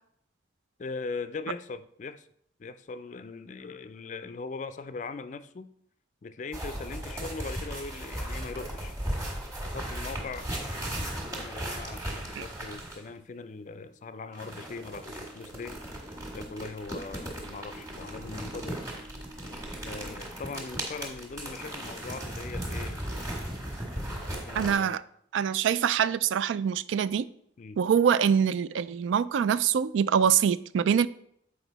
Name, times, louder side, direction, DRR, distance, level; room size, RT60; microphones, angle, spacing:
voice 1, 0.8-2.3 2.6-5.7 6.2-9.0 9.6-15.8 16.3-18.8 19.8-23.4 24.0-25.0 27.6-27.8 30.2-30.3, left 4 dB, 40° left, 13 dB, 0.4 m, -40 dB
sound 1, 6.5-13.1 14.3-24.7, right 1 dB, 20° right, 1.6 m, -37 dB
sound 2, 13.4-20.1, right 1 dB, 70° right, 1.0 m, -54 dB
voice 2, 24.5-25.0 25.3-27.2 27.8-31.1, right 8 dB, 85° right, 16 dB, 0.3 m, -24 dB
8.0 x 4.9 x 4.0 m, 0.69 s
head